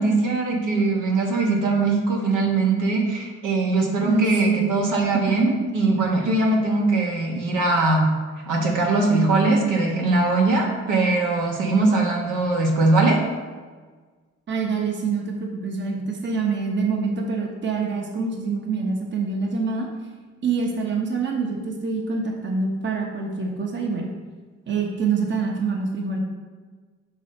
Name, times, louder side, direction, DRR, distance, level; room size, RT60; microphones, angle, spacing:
voice 1, 0.0-8.1 8.5-13.2, right 3 dB, 80° right, 0 dB, 1.3 m, -21 dB
voice 2, 4.0-4.7 14.5-19.9 20.4-24.1 24.7-26.2, right 4 dB, 40° right, 1 dB, 1.0 m, -25 dB
6.2 x 3.9 x 4.2 m, 1.4 s
cardioid pair, 90°, 30 cm